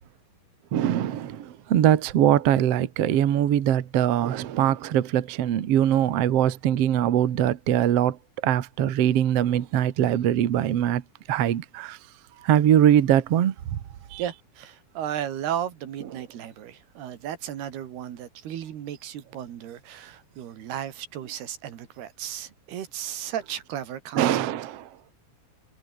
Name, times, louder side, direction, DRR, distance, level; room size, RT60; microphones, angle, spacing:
voice 1, 0.7-11.0 11.3-12.0 12.4-13.8 14.1-14.2 24.1-24.9, right 11 dB, 55° right, 1.8 m, -22 dB
voice 2, 14.2-24.5, right 10 dB, 85° right, 4.2 m, -34 dB
omnidirectional pair, 4.5 m